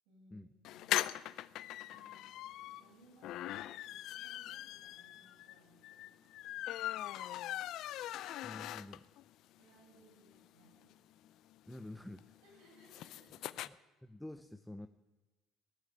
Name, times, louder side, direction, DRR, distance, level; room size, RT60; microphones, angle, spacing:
voice 1, 0.0-1.0 1.9-2.4 2.8-6.3 9.6-10.9 12.4-13.5, right 1 dB, 90° right, -3 dB, 7.5 m, -65 dB
sound 1, 0.6-9.2 9.6-9.7 9.9-10.0 10.3-13.7, left 14 dB, 65° left, 0.5 m, -41 dB
voice 2, 8.4-9.0 11.7-12.4 13.6-13.8 14.0-14.9, left 1 dB, 5° left, 10 dB, 0.6 m, -48 dB
17.5 x 7.4 x 9.8 m, 1.1 s
cardioid pair, 120°, 0 cm